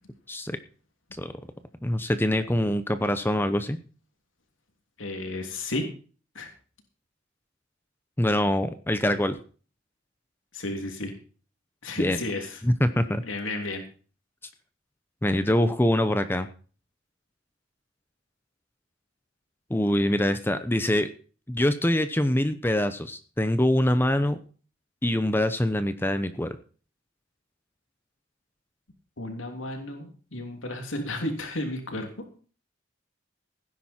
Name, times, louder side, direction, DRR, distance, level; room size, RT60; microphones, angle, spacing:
voice 1, 1.8-3.8 8.2-9.4 12.0-12.2 12.6-13.2 15.2-16.5 19.7-21.1 21.5-24.4 25.0-26.6, left 1 dB, 10° left, 10 dB, 0.8 m, -24 dB
voice 2, 5.0-5.8 6.3-6.5 10.5-11.1 11.8-12.6 13.2-13.8 29.2-32.2, left 2 dB, 75° left, 4 dB, 3.1 m, -33 dB
17.0 x 10.0 x 4.5 m, 0.39 s
head